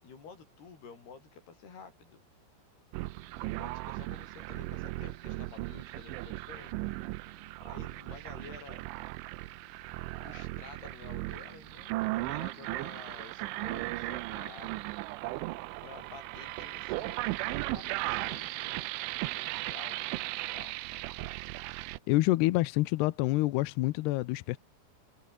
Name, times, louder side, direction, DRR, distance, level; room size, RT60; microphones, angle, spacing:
voice 1, 0.0-2.2 3.4-6.8 7.6-8.8 10.2-14.7 15.8-18.9 19.3-21.1, left 5 dB, 55° left, 7.4 m, -51 dB
sound 1, 2.9-22.0, right 19 dB, 90° right, 3.2 m, -37 dB
voice 2, 22.1-24.6, left 19 dB, 80° left, 2.4 m, -27 dB
omnidirectional pair, 5.5 m